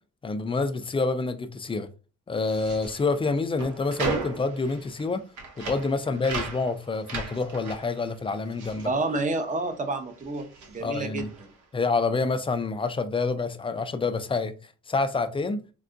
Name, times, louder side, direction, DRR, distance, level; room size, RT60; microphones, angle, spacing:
voice 1, 0.2-1.9 2.3-5.2 5.6-8.9 10.8-11.3 11.7-14.5 14.9-15.6, left 3 dB, 20° left, 0.3 m, -27 dB
sound 1, 2.3-9.8 10.1-11.6, right 3 dB, 80° right, 0.9 m, -37 dB
voice 2, 8.8-11.5, right 2 dB, 25° right, 0.6 m, -29 dB
3.5 x 2.2 x 2.5 m
cardioid pair, 90°, 30 cm